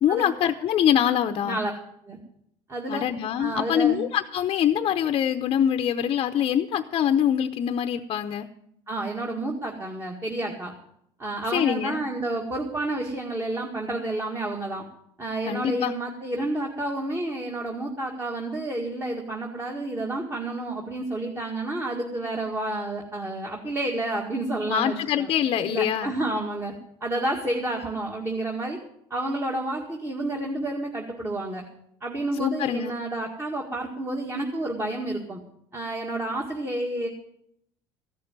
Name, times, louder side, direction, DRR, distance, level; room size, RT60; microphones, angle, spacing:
voice 1, 0.0-1.6 2.9-8.5 11.5-12.0 15.5-15.9 24.7-26.1 32.3-33.0, left 9 dB, 45° left, 7 dB, 0.7 m, -24 dB
voice 2, 2.7-3.0 3.4-4.0 8.9-10.7 11.2-14.8 15.2-25.3 25.6-26.7 27.0-28.8 29.1-31.6 32.0-35.4 35.7-37.1, right 1 dB, 20° right, 1 dB, 1.9 m, -30 dB
14.5 x 6.6 x 9.3 m, 0.75 s
supercardioid pair, 105°, 12 cm